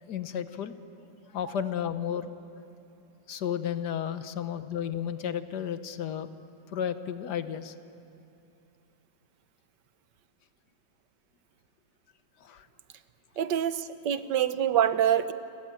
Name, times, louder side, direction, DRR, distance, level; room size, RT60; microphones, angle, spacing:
voice 1, 0.0-0.7 1.3-2.3 3.3-6.3 6.7-7.7 12.4-12.7, left 9 dB, 75° left, 11 dB, 1.6 m, -33 dB
voice 2, 13.4-15.3, right 10 dB, 85° right, 12 dB, 1.6 m, -25 dB
29.5 x 21.5 x 9.0 m, 2.7 s
omnidirectional pair, 1.8 m